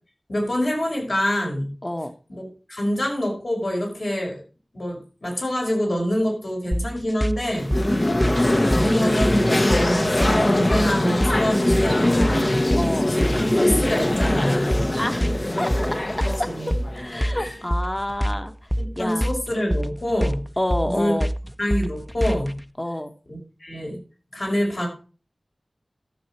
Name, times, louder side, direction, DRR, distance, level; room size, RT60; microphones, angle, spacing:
voice 1, 0.3-1.7 2.3-4.4 4.7-7.7 8.7-12.7 13.1-14.9 16.5-16.7 17.3-17.5 18.8-20.4 20.8-21.2 21.6-22.6 23.3-24.0 24.3-24.9, equal, 60° left, 0 dB, 5.5 m, -26 dB
voice 2, 1.8-2.1 7.8-8.2 12.7-13.1 15.0-15.3 15.6-18.5 18.9-19.3 20.6-21.3 22.8-23.1, left 1 dB, 20° left, 7 dB, 1.3 m, -28 dB
sound 1, 6.7-22.6, equal, 5° left, 0.7 m, -26 dB
sound 2, 7.6-17.6, left 1 dB, 40° left, 1.1 m, -22 dB
13.0 x 7.2 x 4.6 m, 0.37 s
wide cardioid pair, 45°, 0 cm